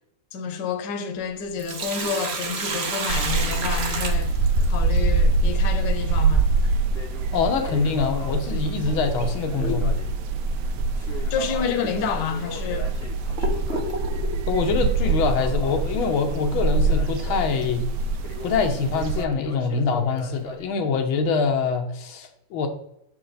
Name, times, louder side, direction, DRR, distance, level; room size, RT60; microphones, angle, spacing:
voice 1, 0.3-4.4 4.6-6.5 9.6-9.8 11.3-12.9, left 6 dB, 65° left, 1.4 m, -29 dB
Crackle, 1.2-3.9 4.1-4.2 4.7-4.8 5.5-6.1 6.5-20.7, left 3 dB, 45° left, 0.8 m, -40 dB
Sink (filling or washing), 1.4-5.0 7.4-7.5 9.4-9.6 10.1-10.2 11.0-11.1 11.8-11.9 12.5-14.4, right 3 dB, 50° right, 0.8 m, -30 dB
sound 1, 3.1-19.2, right 3 dB, 85° right, 0.8 m, -24 dB
voice 2, 7.3-9.9 14.5-17.9 18.4-22.7, left 5 dB, 90° left, 1.7 m, -24 dB
7.1 x 4.5 x 3.9 m
omnidirectional pair, 2.2 m